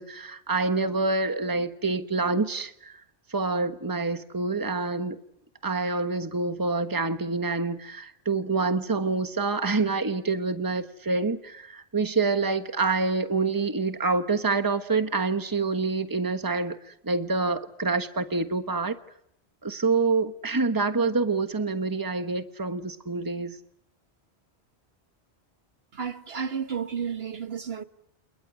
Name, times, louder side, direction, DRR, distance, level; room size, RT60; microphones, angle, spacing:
voice 1, 0.0-3.0 3.3-5.2 5.6-18.9 19.6-23.6, right 3 dB, 20° right, 1.3 m, -27 dB
voice 2, 25.9-27.8, right 7 dB, 65° right, 1.5 m, -32 dB
30.0 x 28.5 x 6.2 m
omnidirectional pair, 1.1 m